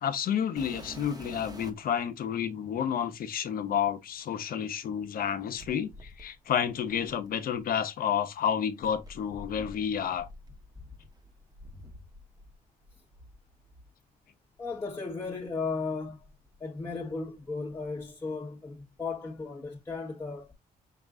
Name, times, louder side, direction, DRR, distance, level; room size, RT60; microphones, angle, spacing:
voice 1, 0.0-10.3, left 8 dB, 70° left, 0.8 m, -30 dB
sound 1, 0.6-2.0 2.8-2.9 5.6-7.7 8.8-12.5 12.8-13.9 14.6-14.8 15.4-15.5 16.2-17.3 17.5-18.1 19.4-19.5, equal, 25° right, 1.0 m, -48 dB
voice 2, 14.6-16.3 16.6-20.5, left 4 dB, 20° left, 1.2 m, -35 dB
5.9 x 2.5 x 3.6 m
cardioid pair, 115°, 15 cm